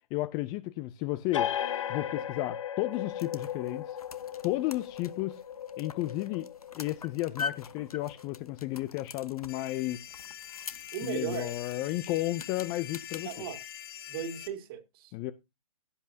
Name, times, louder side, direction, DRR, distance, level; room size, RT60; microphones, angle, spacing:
voice 1, 0.1-1.5 1.9-4.0 4.4-5.4 5.8-10.0 11.0-13.5 15.1-15.3, left 17 dB, 20° left, 0.5 m, -33 dB
sound 1, 1.3-8.5, left 10 dB, 55° left, 1.5 m, -37 dB
sound 2, 2.9-13.4, left 5 dB, 80° left, 1.2 m, -45 dB
sound 3, 9.5-14.5, left 11 dB, 40° left, 1.7 m, -44 dB
voice 2, 10.9-11.5 13.2-13.6 14.1-15.1, right 9 dB, 40° right, 2.4 m, -36 dB
16.5 x 8.3 x 2.8 m
figure-of-eight pair, 135°, 19 cm